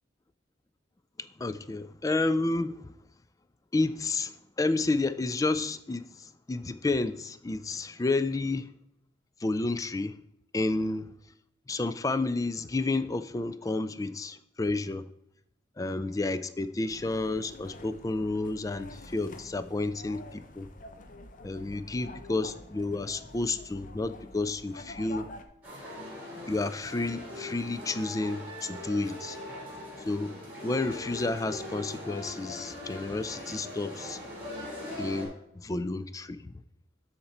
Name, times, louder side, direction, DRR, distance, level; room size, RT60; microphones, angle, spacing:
voice 1, 1.2-2.9 3.7-8.7 9.4-10.1 10.5-11.1 11.7-15.1 15.8-20.7 21.4-25.3 26.5-29.4 30.1-34.2 35.0-36.4, left 2 dB, 20° left, 0.3 m, -31 dB
sound 1, 16.9-25.4, left 2 dB, 45° left, 0.7 m, -47 dB
sound 2, 25.6-35.3, left 1 dB, 10° right, 3.5 m, -41 dB
12.5 x 4.3 x 4.2 m
head